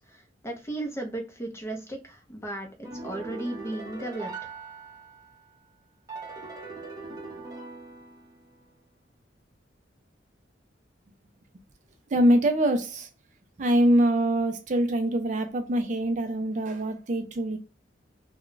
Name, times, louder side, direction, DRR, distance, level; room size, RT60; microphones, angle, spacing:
voice 1, 0.0-4.3, right 1 dB, 15° left, 0.6 m, -35 dB
sound 1, 2.8-5.5 6.1-8.6, right 3 dB, 20° right, 0.8 m, -41 dB
voice 2, 12.1-13.1 13.6-17.6, right 1 dB, 40° right, 0.4 m, -24 dB
2.3 x 2.1 x 3.8 m
head